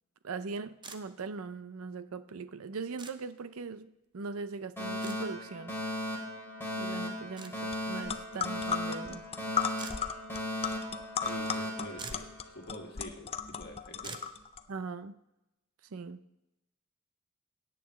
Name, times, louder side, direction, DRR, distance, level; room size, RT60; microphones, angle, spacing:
voice 1, 0.2-5.7 6.8-9.2 14.7-15.1 15.9-16.2, right 4 dB, 75° right, 13 dB, 0.5 m, -40 dB
sound 1, 0.8-1.0 3.0-3.1 5.0-5.2 7.4-7.5 9.8-10.0 11.6-11.7 11.9-12.3 14.0-14.3, right 4 dB, 20° right, 0.6 m, -44 dB
Alarm, 4.8-12.8, left 1 dB, 10° left, 2.6 m, -37 dB
sound 2, 7.7-7.8 8.0-14.6, left 7 dB, 25° left, 0.5 m, -36 dB
voice 2, 11.2-14.2, left 1 dB, 50° left, 0 dB, 2.0 m, -47 dB
17.0 x 8.5 x 3.1 m, 0.92 s
head